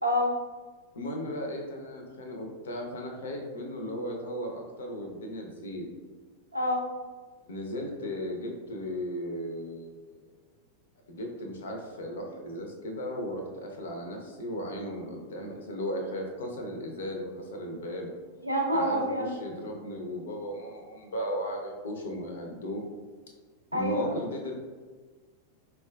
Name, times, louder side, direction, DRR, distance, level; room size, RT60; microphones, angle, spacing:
voice 1, 0.0-0.4 6.5-6.9 18.4-19.3 23.7-24.1, equal, 85° right, 0 dB, 0.5 m, -27 dB
voice 2, 0.9-5.9 7.5-10.3 11.1-18.1 18.7-22.8 23.7-24.5, equal, 65° left, 2 dB, 0.5 m, -36 dB
4.2 x 2.3 x 2.2 m, 1.4 s
figure-of-eight pair, 90°, 0 cm